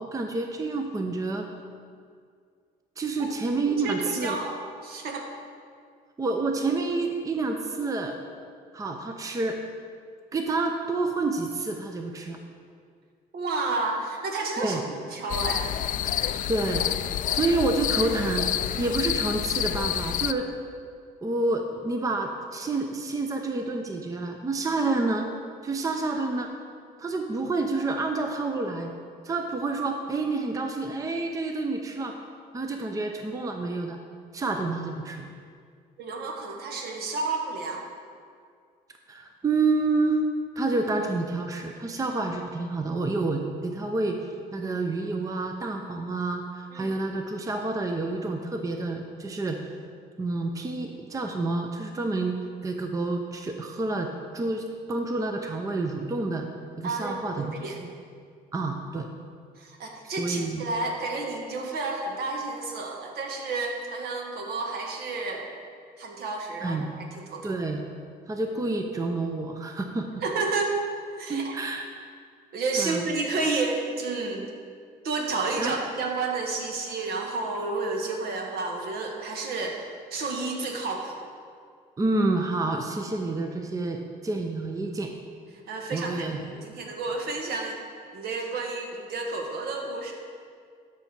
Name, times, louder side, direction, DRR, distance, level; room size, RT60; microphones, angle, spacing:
voice 1, 0.0-1.5 3.0-4.4 6.2-8.2 8.7-9.6 10.3-12.4 14.6-14.8 16.5-18.5 18.8-20.6 21.2-25.3 25.6-26.5 27.0-28.9 29.2-32.2 32.5-34.0 34.3-35.3 39.1-40.2 40.6-49.6 50.2-52.4 52.6-56.5 56.8-57.9 58.5-59.1 60.1-60.7 66.6-66.9 67.4-67.8 68.3-70.2 71.3-71.9 72.8-73.1 75.6-75.7 82.0-85.1 85.9-86.4, right 3 dB, 20° right, 4 dB, 0.6 m, -28 dB
voice 2, 3.8-4.5 4.8-5.3 13.3-15.7 36.0-37.8 46.7-46.9 56.8-57.8 59.6-65.5 66.0-67.6 70.2-70.8 71.2-71.5 72.5-74.5 75.0-79.8 80.1-81.2 85.7-87.8 88.1-90.1, right 3 dB, 65° right, 2 dB, 1.5 m, -31 dB
sound 1, 15.3-20.3, left 11 dB, 50° left, 0.4 m, -28 dB
12.5 x 5.8 x 4.4 m, 2.2 s
cardioid pair, 110°, 17 cm